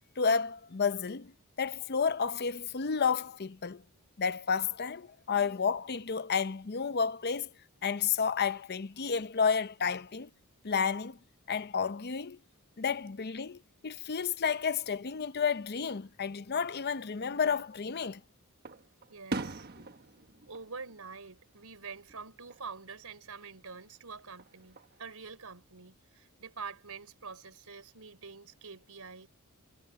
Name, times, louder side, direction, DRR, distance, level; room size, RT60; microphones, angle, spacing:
voice 1, 0.2-1.3 1.6-3.8 4.2-7.5 7.8-10.3 10.6-11.2 11.5-12.4 12.8-18.2, left 6 dB, 45° left, 0.7 m, -31 dB
Fireworks, 17.5-18.2 18.6-21.8 22.1-22.7 24.2-25.0, right 2 dB, 45° right, 1.3 m, -42 dB
voice 2, 19.1-19.7 20.5-29.3, right 5 dB, 85° right, 3.8 m, -46 dB
head